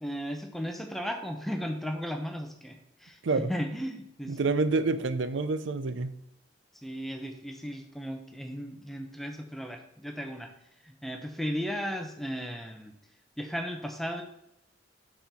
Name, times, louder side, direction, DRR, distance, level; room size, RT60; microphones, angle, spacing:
voice 1, 0.0-4.4 6.8-10.5 10.8-12.9 13.4-14.2, equal, ahead, 4 dB, 0.7 m, -35 dB
voice 2, 4.3-6.1, right 3 dB, 85° right, 12 dB, 0.5 m, -28 dB
5.7 x 4.3 x 5.9 m, 0.78 s
head